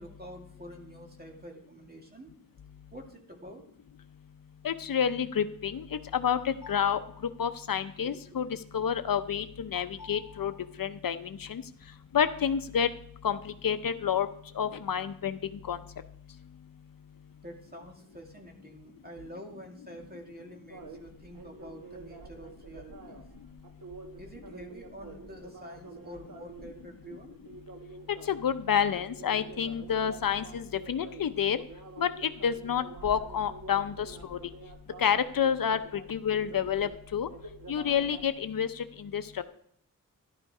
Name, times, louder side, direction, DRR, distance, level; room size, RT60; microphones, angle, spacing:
voice 1, 0.0-2.4 2.9-3.6 17.4-23.2 24.2-27.3, equal, 25° right, 2 dB, 2.3 m, -47 dB
voice 2, 4.6-7.0 7.4-8.5 8.7-10.5 10.8-11.6 12.1-12.9 13.2-14.3 14.6-15.4 15.7-15.8 28.3-31.6 32.0-34.4 35.0-37.3 37.7-39.4, left 8 dB, 75° left, 10 dB, 0.7 m, -29 dB
sound 1, 20.7-38.3, right 3 dB, 65° right, 1.5 m, -48 dB
12.5 x 11.5 x 4.8 m, 0.67 s
wide cardioid pair, 90°, 34 cm